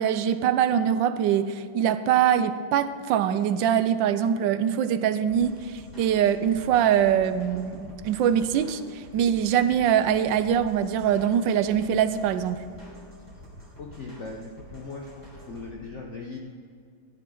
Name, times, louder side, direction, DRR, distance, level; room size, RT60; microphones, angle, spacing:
voice 1, 0.0-12.6, right 9 dB, 80° right, 12 dB, 1.3 m, -23 dB
sound 1, 5.3-15.7, right 1 dB, 10° left, 3.6 m, -48 dB
voice 2, 13.8-16.4, left 3 dB, 55° left, 2 dB, 0.9 m, -39 dB
14.5 x 11.0 x 3.8 m, 2.3 s
omnidirectional pair, 2.0 m